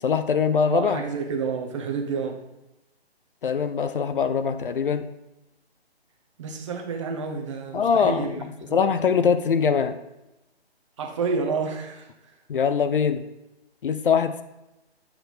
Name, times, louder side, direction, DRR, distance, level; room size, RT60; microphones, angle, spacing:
voice 1, 0.0-1.0 3.4-5.1 7.7-9.9 12.5-13.2 13.8-14.4, left 6 dB, 55° left, 10 dB, 0.5 m, -22 dB
voice 2, 0.7-2.4 6.4-8.8 11.0-12.1, right 5 dB, 30° right, 3 dB, 0.9 m, -29 dB
8.8 x 4.5 x 3.9 m, 0.95 s
figure-of-eight pair, 150°, 32 cm